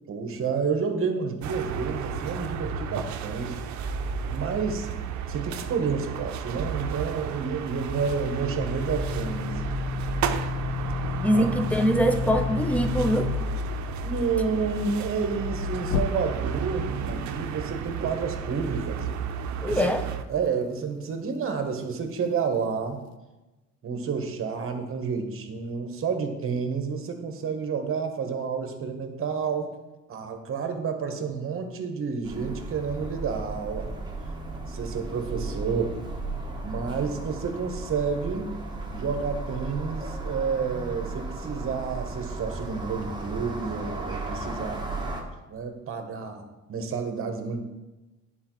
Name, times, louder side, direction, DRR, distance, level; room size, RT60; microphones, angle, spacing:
voice 1, 0.1-3.6 4.3-4.9 5.3-9.6 9.9-10.0 11.3-11.4 14.0-19.3 19.6-19.9 20.3-23.0 23.8-29.7 30.1-33.9 34.7-36.0 36.6-38.5 38.9-44.9 45.5-47.6, right 5 dB, 45° right, 6 dB, 1.0 m, -30 dB
sound 1, 1.4-20.2, right 4 dB, 65° right, 0.5 m, -32 dB
sound 2, 7.5-13.3 15.9-16.6, left 6 dB, 65° left, 0.5 m, -32 dB
voice 2, 11.2-13.3 19.6-20.1, equal, 5° left, 7 dB, 0.4 m, -23 dB
sound 3, 32.2-45.2, right 3 dB, 15° right, 1.0 m, -35 dB
9.6 x 4.1 x 3.0 m, 1.1 s
cardioid pair, 120°, 31 cm